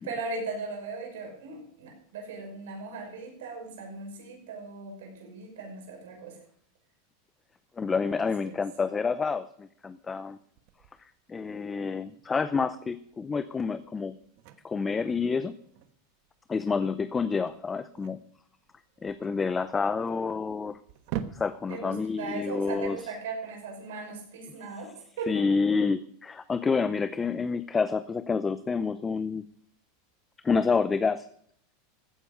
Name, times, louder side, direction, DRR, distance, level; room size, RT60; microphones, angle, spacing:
voice 1, 0.0-6.4 7.8-8.6 21.7-24.9 25.2-25.6, right 4 dB, 80° right, 1 dB, 6.1 m, -38 dB
voice 2, 7.8-10.4 11.3-14.2 14.6-15.5 16.5-18.2 19.0-20.8 21.3-23.0 25.3-29.4 30.4-31.3, left 5 dB, 15° left, 12 dB, 0.6 m, -28 dB
sound 1, 10.5-23.7, right 10 dB, 60° right, 1.2 m, -45 dB
14.5 x 9.5 x 5.4 m, 0.64 s
supercardioid pair, 130°, 0 cm